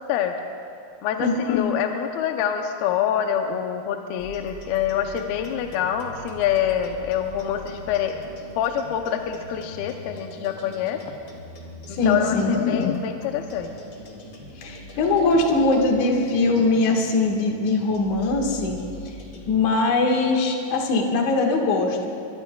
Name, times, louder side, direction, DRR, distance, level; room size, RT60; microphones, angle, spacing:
voice 1, 1.0-8.2 8.6-11.0 12.1-13.7 15.2-15.5, left 9 dB, 80° left, 4 dB, 2.5 m, -25 dB
sound 1, 4.2-19.6, left 1 dB, 40° left, 2.1 m, -42 dB
voice 2, 11.9-12.6 14.6-18.8 19.5-22.1, left 3 dB, 60° left, 1 dB, 2.6 m, -21 dB
24.0 x 23.5 x 2.3 m, 2.5 s
omnidirectional pair, 4.6 m